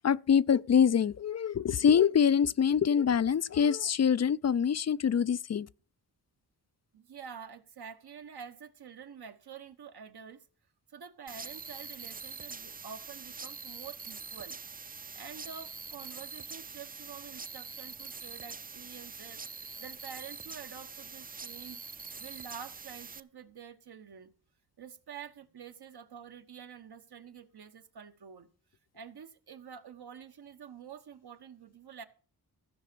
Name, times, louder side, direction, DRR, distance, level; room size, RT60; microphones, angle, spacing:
voice 1, 0.0-5.7, left 7 dB, 40° left, 0.4 m, -25 dB
voice 2, 6.9-10.5 10.9-14.6 15.1-21.8 22.2-24.3 24.8-28.5 28.9-32.1, right 7 dB, 70° right, 1.1 m, -48 dB
sound 1, 11.3-23.2, right 5 dB, 20° right, 0.5 m, -44 dB
15.0 x 5.1 x 6.8 m
cardioid pair, 45°, 40 cm